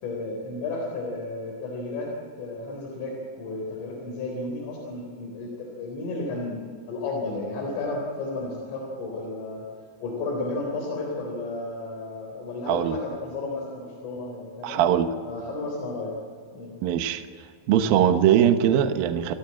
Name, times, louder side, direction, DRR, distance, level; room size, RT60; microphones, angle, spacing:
voice 1, 0.0-2.1 2.4-6.6 6.9-9.7 10.0-14.8 15.2-16.2 16.5-16.7, left 2 dB, 85° left, -2 dB, 6.6 m, -33 dB
voice 2, 12.7-13.0 14.6-15.1 16.8-17.2 17.7-19.3, right 9 dB, 75° right, 8 dB, 2.2 m, -21 dB
29.5 x 15.5 x 8.8 m, 2.1 s
omnidirectional pair, 5.6 m